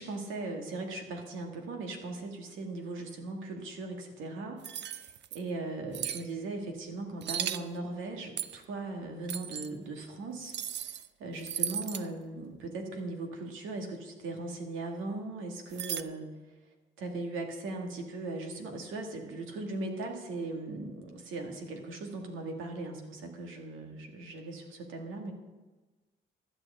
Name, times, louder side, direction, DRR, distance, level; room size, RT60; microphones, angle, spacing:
voice 1, 0.0-16.3 17.0-25.3, right 2 dB, 85° right, 3 dB, 2.1 m, -39 dB
sound 1, 4.6-5.4 5.9-6.2 7.2-7.6 8.4-8.6 9.3-9.7 10.5-11.1 11.4-12.1 15.7-16.0, right 10 dB, 60° right, 0.6 m, -36 dB
15.5 x 11.0 x 3.8 m, 1.2 s
cardioid pair, 90°, 20 cm